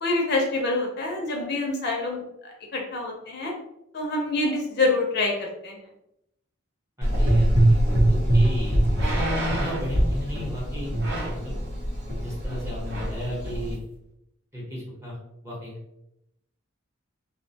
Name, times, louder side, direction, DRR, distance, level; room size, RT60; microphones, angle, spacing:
voice 1, 0.0-3.5 3.9-5.8, left 2 dB, 55° left, 0 dB, 0.5 m, -26 dB
voice 2, 7.0-8.8 9.6-10.9 11.3-11.6 12.2-13.8 14.5-15.2 15.4-16.0, left 1 dB, 15° right, -6 dB, 0.8 m, -35 dB
Gurgling / Engine, 7.0-13.7, right 1 dB, 85° right, 0.9 m, -23 dB
sound 1, 7.9-8.0 8.9-9.9 11.0-11.5 12.4-12.6 12.9-13.2 13.7-13.8, right 1 dB, 60° right, 0.7 m, -31 dB
2.3 x 2.1 x 2.7 m, 0.83 s
head